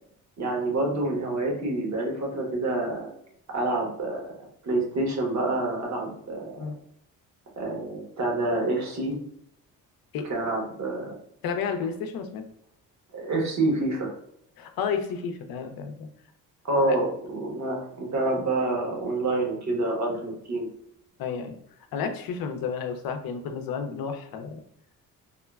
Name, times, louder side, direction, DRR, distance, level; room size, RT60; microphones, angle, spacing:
voice 1, 0.4-3.1 3.5-4.3 4.6-6.7 7.6-9.1 10.3-11.1 13.1-14.1 16.7-20.7, right 2 dB, 50° right, 0 dB, 1.1 m, -27 dB
voice 2, 11.4-12.4 14.6-16.1 16.8-17.0 21.2-21.6 21.9-24.6, left 6 dB, 70° left, 7 dB, 0.6 m, -31 dB
3.6 x 2.2 x 2.3 m, 0.73 s
cardioid pair, 85°, 37 cm